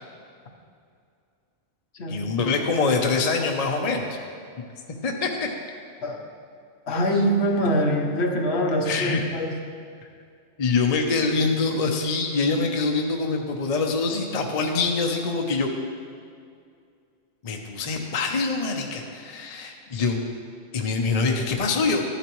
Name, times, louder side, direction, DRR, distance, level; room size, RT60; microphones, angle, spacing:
voice 1, 2.1-4.2 5.0-5.5 8.8-9.2 10.6-15.7 17.4-20.2 20.7-22.0, left 4 dB, 40° left, 2 dB, 0.7 m, -24 dB
voice 2, 6.9-9.6, equal, 60° left, 2 dB, 1.2 m, -24 dB
12.5 x 10.0 x 3.0 m, 2.3 s
omnidirectional pair, 1.3 m